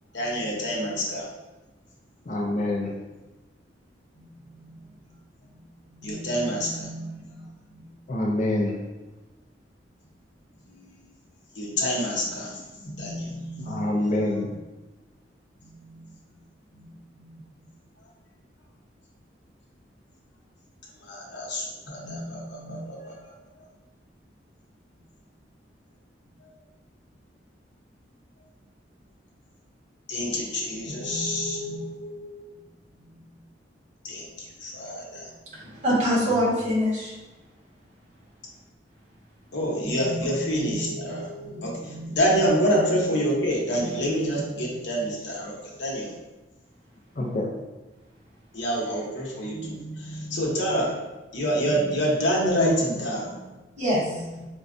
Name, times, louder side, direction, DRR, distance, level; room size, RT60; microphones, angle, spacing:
voice 1, 0.1-1.3 4.2-4.8 5.9-7.9 10.7-10.9 11.6-14.2 14.4-14.6 15.6-16.1 16.7-17.4 21.0-23.6 26.4-26.5 30.1-32.5 33.1-33.2 34.0-35.3 39.5-46.1 48.5-50.9 51.3-53.4 54.1-54.5, equal, 75° left, -3 dB, 0.9 m, -28 dB
voice 2, 2.3-2.9 8.1-8.8 13.7-14.5 47.2-47.5, left 1 dB, 40° left, -1 dB, 0.4 m, -26 dB
voice 3, 35.5-37.1 53.8-54.2, equal, 40° right, -8 dB, 1.4 m, -24 dB
5.0 x 2.3 x 2.5 m, 1.1 s
head